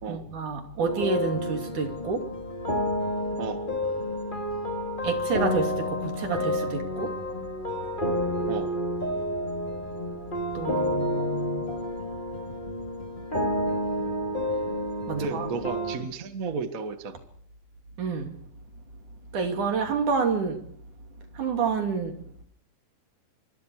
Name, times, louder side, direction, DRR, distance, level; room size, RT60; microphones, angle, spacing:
voice 1, 0.1-2.3 5.0-7.2 10.5-11.7 15.1-15.5 18.0-18.3 19.3-20.7 21.3-22.2, right 4 dB, 60° right, 5 dB, 4.1 m, -29 dB
sound 1, 0.8-16.0, left 1 dB, 15° left, 2.4 m, -30 dB
voice 2, 15.1-17.2, right 4 dB, 40° right, 8 dB, 1.3 m, -33 dB
27.0 x 24.5 x 4.8 m, 0.62 s
omnidirectional pair, 4.0 m